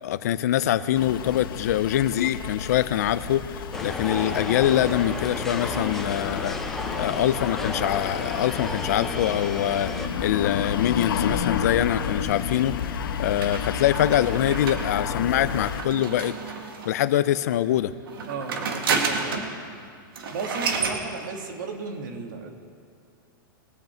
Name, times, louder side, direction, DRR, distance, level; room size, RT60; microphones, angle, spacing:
voice 1, 0.0-6.6 6.9-12.7 13.2-16.4 16.9-17.9, left 12 dB, 45° left, 14 dB, 0.4 m, -24 dB
sound 1, 0.9-15.8, left 7 dB, 75° left, 1.0 m, -31 dB
sound 2, 3.7-10.1, left 2 dB, 5° left, 0.7 m, -32 dB
sound 3, 13.4-17.1 18.0-19.6 19.8-19.9 20.1-21.0, right 5 dB, 85° right, 1.9 m, -30 dB
voice 2, 18.3-19.6 20.3-22.5, right 4 dB, 60° right, 3 dB, 2.0 m, -34 dB
21.5 x 8.1 x 4.4 m, 2.2 s
supercardioid pair, 175°, 12 cm